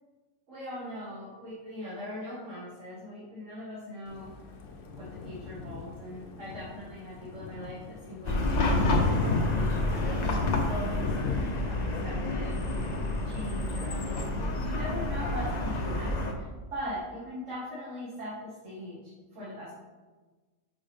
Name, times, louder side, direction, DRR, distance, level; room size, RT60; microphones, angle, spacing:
voice 1, 0.5-4.3 4.9-12.9 13.2-16.1 16.4-19.7, left 1 dB, 70° right, -8 dB, 1.9 m, -40 dB
Thunder, 4.1-13.7, left 4 dB, 70° left, 1.0 m, -37 dB
Chatter / Car passing by / Traffic noise roadway noise, 8.3-16.3, left 1 dB, 45° left, 0.6 m, -29 dB
6.2 x 5.0 x 3.5 m, 1.3 s
omnidirectional pair, 1.4 m